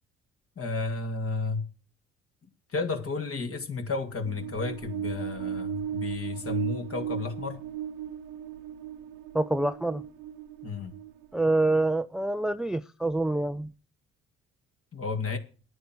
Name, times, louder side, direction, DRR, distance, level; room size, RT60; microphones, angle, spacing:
voice 1, 0.6-1.7 2.7-7.6 10.6-11.0 14.9-15.4, left 4 dB, 40° left, 2.3 m, -32 dB
sound 1, 4.0-11.7, right 9 dB, 75° right, 1.0 m, -36 dB
voice 2, 9.3-10.0 11.3-13.7, right 2 dB, ahead, 0.5 m, -26 dB
10.0 x 9.4 x 6.1 m
hypercardioid pair, 55°, 34 cm